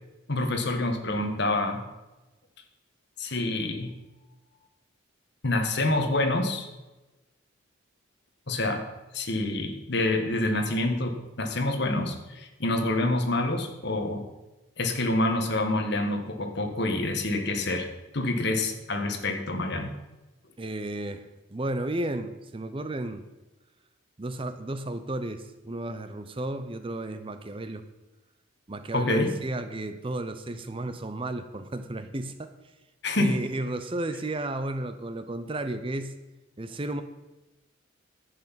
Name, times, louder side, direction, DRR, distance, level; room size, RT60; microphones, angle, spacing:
voice 1, 0.3-1.8 3.2-3.9 5.4-6.7 8.5-8.8 9.1-14.2 14.8-17.9 18.1-19.9 28.9-29.3 33.0-33.4, left 2 dB, 55° left, 5 dB, 1.5 m, -27 dB
voice 2, 20.6-23.2 24.2-27.8 28.7-32.5 33.2-36.1 36.6-37.0, right 1 dB, 25° right, 10 dB, 0.6 m, -33 dB
10.5 x 8.2 x 5.8 m, 1.1 s
head